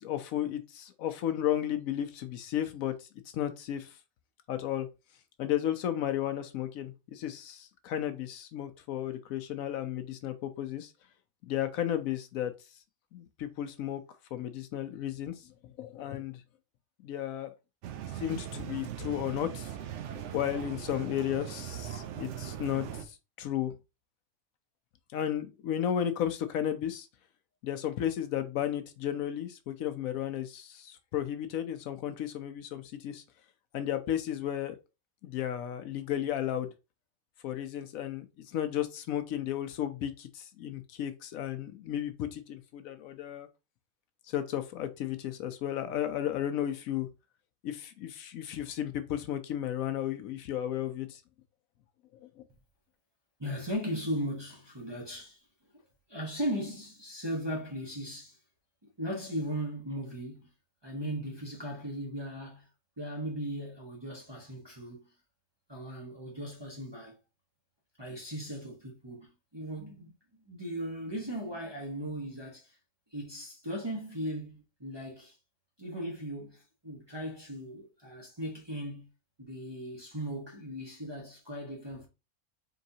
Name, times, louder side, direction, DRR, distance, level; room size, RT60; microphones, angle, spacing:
voice 1, 0.0-3.1 3.3-4.0 4.5-4.9 5.4-10.9 11.5-12.5 13.1-14.0 14.3-16.4 17.0-17.5 18.1-19.7 20.3-23.7 25.1-27.1 27.6-33.2 33.7-34.8 35.2-36.7 37.4-43.5 44.3-47.1 47.6-51.2 52.4-52.5, left 11 dB, 75° left, 1.0 m, -34 dB
sound 1, 17.8-23.0, right 10 dB, 65° right, 0.8 m, -40 dB
voice 2, 53.4-55.4 56.1-58.4 59.0-60.5 60.8-62.7 63.0-65.1 65.7-67.2 68.0-72.8 73.1-75.4 75.8-79.1 79.4-82.1, equal, 25° right, 0.7 m, -38 dB
3.9 x 3.7 x 2.7 m
omnidirectional pair, 1.5 m